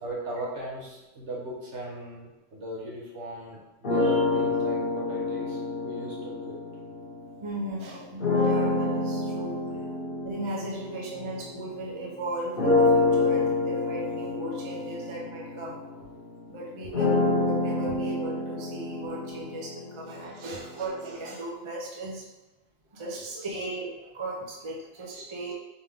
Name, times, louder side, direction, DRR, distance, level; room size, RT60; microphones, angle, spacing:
voice 1, 0.0-6.6 16.8-16.9 20.5-20.6 23.4-23.7 25.2-25.5, right 1 dB, 60° right, -3 dB, 1.3 m, -38 dB
sound 1, 3.8-7.4 8.2-12.0 12.6-20.5, left 2 dB, 45° left, 1.1 m, -27 dB
voice 2, 7.4-9.6 10.2-15.8 16.5-22.2 22.9-25.5, right 2 dB, 30° right, -2 dB, 0.5 m, -37 dB
4.3 x 3.4 x 3.5 m, 1.1 s
omnidirectional pair, 1.4 m